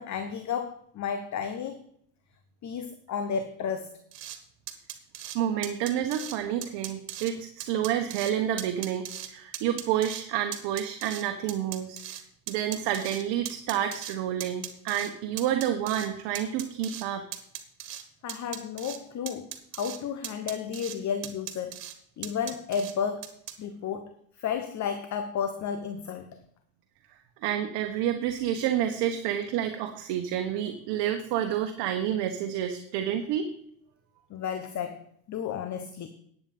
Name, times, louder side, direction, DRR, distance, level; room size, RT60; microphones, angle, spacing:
voice 1, 0.0-1.9 2.6-4.0 18.2-19.5 19.7-21.8 22.2-23.3 23.6-26.4 34.3-36.1, left 7 dB, 35° left, 9 dB, 1.1 m, -32 dB
sound 1, 4.1-4.4 4.7-5.4 5.6-6.4 6.6-7.3 7.6-8.3 8.6-9.3 9.5-10.2 10.5-12.2 12.5-14.2 14.4-15.1 15.4-16.1 16.4-17.1 17.3-18.0 18.3-19.0 19.3-20.0 20.2-21.0 21.2-21.9 22.2-22.9 23.2-23.5, right 12 dB, 80° right, 1.6 m, -38 dB
voice 2, 5.3-12.0 12.5-17.2 27.4-33.5, right 10 dB, 60° right, 5 dB, 1.3 m, -29 dB
10.0 x 8.3 x 5.4 m, 0.66 s
hypercardioid pair, 85°, 47 cm